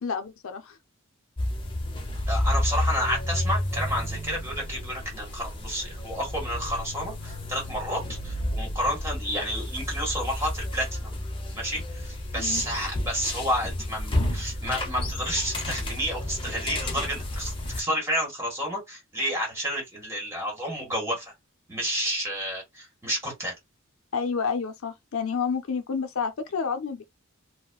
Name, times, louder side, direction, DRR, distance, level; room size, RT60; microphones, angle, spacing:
voice 1, 0.0-0.8 12.3-12.6 24.1-27.0, left 5 dB, 80° left, 0.5 m, -29 dB
sound 1, 1.4-17.8, left 1 dB, 25° left, 0.8 m, -31 dB
voice 2, 2.3-11.1 11.5-21.3 21.7-23.5, equal, 15° right, 1.6 m, -30 dB
4.0 x 2.1 x 2.3 m
head